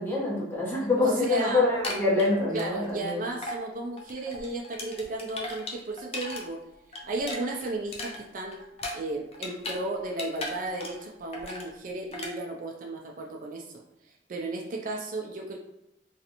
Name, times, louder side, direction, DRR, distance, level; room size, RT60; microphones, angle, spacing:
voice 1, 0.0-3.2, left 2 dB, 15° left, -6 dB, 0.9 m, -25 dB
voice 2, 1.0-1.7 2.5-6.6 7.0-8.6 8.9-13.8 14.3-15.6, right 2 dB, 50° right, 0 dB, 0.4 m, -34 dB
sound 1, 1.6-3.1 3.4-3.6 4.0-6.4 6.7-9.8 10.1-11.1 11.3-11.7 12.1-12.3, left 2 dB, 35° left, 0.5 m, -37 dB
3.1 x 2.5 x 2.8 m, 0.87 s
head